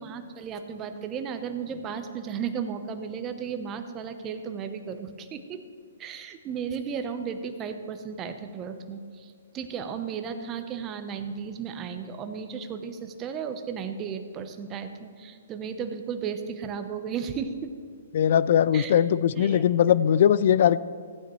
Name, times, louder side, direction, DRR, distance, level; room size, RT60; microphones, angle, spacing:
voice 1, 0.0-5.6 6.0-17.7 18.7-19.0 19.4-19.6, right 6 dB, 25° right, 8 dB, 0.8 m, -34 dB
voice 2, 18.1-20.8, left 9 dB, 55° left, 17 dB, 0.3 m, -20 dB
16.0 x 9.1 x 3.1 m, 2.1 s
hypercardioid pair, 140°, 0 cm